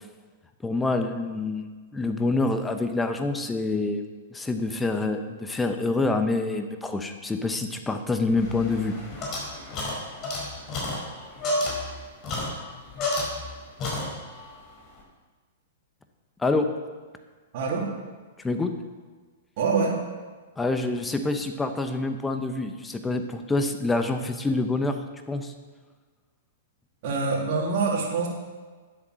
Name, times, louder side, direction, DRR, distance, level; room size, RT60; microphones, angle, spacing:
voice 1, 0.6-1.7 1.9-4.0 4.3-9.0 16.4-16.7 18.4-18.7 20.6-25.0 25.3-25.5, left 3 dB, 10° left, 7 dB, 1.0 m, -26 dB
sound 1, 8.4-13.5 13.8-14.5, left 2 dB, 35° left, 4.3 m, -31 dB
voice 2, 17.5-17.9 19.6-20.0 27.0-28.3, right 4 dB, 50° right, -4 dB, 3.2 m, -25 dB
10.5 x 8.1 x 6.3 m, 1.4 s
hypercardioid pair, 135°, 0 cm